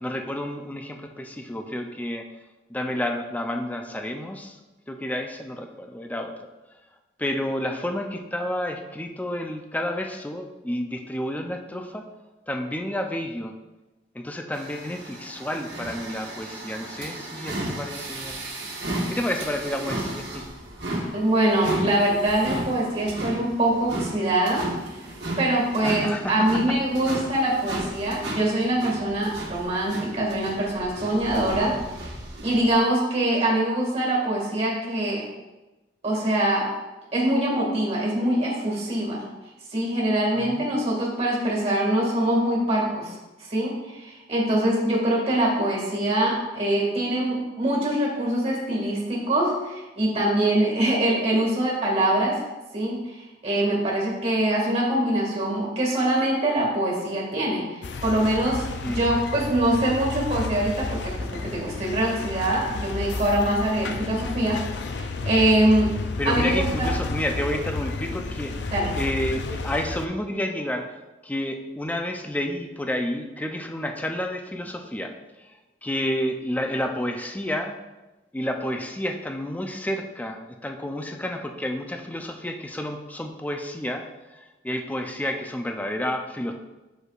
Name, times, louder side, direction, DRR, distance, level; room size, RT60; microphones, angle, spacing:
voice 1, 0.0-2.3 2.7-4.6 4.9-6.3 7.2-12.1 12.5-13.5 14.1-18.4 19.1-20.5 25.8-26.5 31.5-31.8 40.3-40.7 58.8-59.3 66.2-71.0 71.2-75.1 75.4-77.8 78.3-84.0 84.3-86.5, left 1 dB, 10° left, 4 dB, 0.4 m, -30 dB
sound 1, 14.5-32.8, right 1 dB, 80° right, 1.4 m, -34 dB
voice 2, 21.1-24.7 25.4-31.7 32.4-35.3 36.0-36.7 37.1-39.2 39.7-52.4 52.7-64.6 64.9-65.9 66.2-66.9 68.7-68.9, right 1 dB, 35° right, -2 dB, 2.0 m, -24 dB
sound 2, 57.8-70.1, left 3 dB, 70° left, 0.5 m, -31 dB
8.0 x 6.4 x 2.5 m, 1.1 s
head